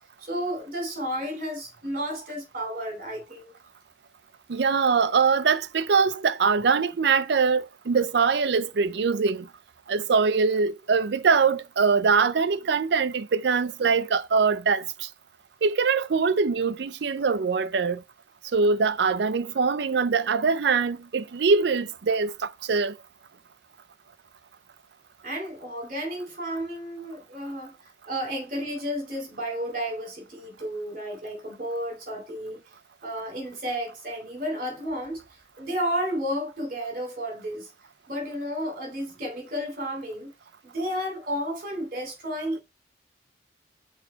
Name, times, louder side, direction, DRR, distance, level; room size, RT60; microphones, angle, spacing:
voice 1, 0.2-3.5 25.2-27.7 28.1-32.6 33.0-37.7 38.1-40.3 40.7-42.6, equal, 45° right, 3.2 m, -32 dB
voice 2, 4.5-9.5 9.9-15.1 15.6-18.0 18.5-22.9, right 5 dB, 60° right, 0.4 m, -23 dB
6.2 x 3.9 x 4.4 m
head